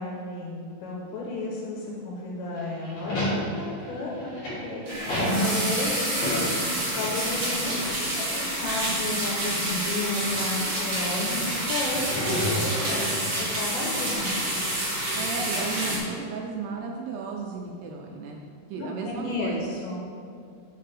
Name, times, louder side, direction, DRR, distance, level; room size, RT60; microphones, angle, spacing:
voice 1, 0.0-4.3 4.6-5.1 5.4-6.2 7.0-12.1 12.6-14.4 18.8-20.0, left 2 dB, 85° left, -3 dB, 3.1 m, -33 dB
sound 1, 2.6-7.4 7.7-7.8 8.8-9.6 10.3-10.4 11.8-13.3, equal, 45° left, 2.6 m, -30 dB
sound 2, 4.9-16.0, right 1 dB, 50° right, 1.8 m, -28 dB
voice 2, 15.1-18.4 18.7-19.6, right 4 dB, 80° right, 0 dB, 2.5 m, -34 dB
7.8 x 6.5 x 3.4 m, 2.4 s
omnidirectional pair, 5.0 m